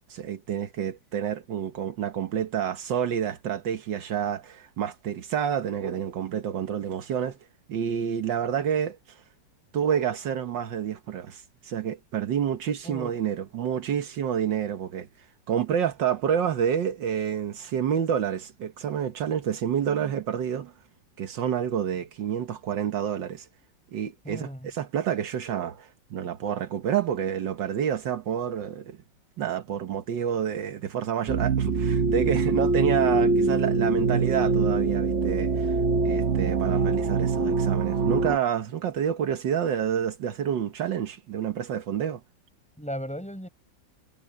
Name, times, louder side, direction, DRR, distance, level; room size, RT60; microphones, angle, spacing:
voice 1, 0.1-7.4 7.7-9.0 9.7-15.1 15.5-20.7 21.2-23.5 23.9-29.0 29.4-35.8 36.0-42.2, right 9 dB, 80° right, 1.8 m, -28 dB
voice 2, 24.2-24.7 42.8-43.5, equal, 5° left, 6.0 m, -36 dB
sound 1, 31.3-38.4, right 4 dB, 50° right, 1.0 m, -24 dB
omnidirectional pair, 2.0 m